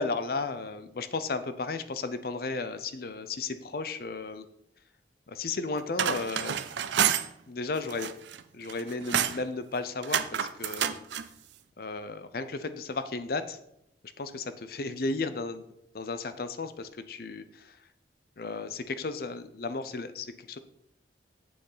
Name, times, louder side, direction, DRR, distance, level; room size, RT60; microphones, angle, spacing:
voice 1, 0.0-4.5 5.3-6.6 7.5-8.1 8.5-11.0 11.8-13.6 14.2-15.7 15.9-17.9 18.4-20.6, left 3 dB, 55° left, 11 dB, 0.6 m, -34 dB
sound 1, 5.8-7.3 7.8-8.4 8.7-9.4 10.0-11.3, right 9 dB, 80° right, 0.5 m, -29 dB
7.7 x 6.7 x 4.0 m, 0.80 s
head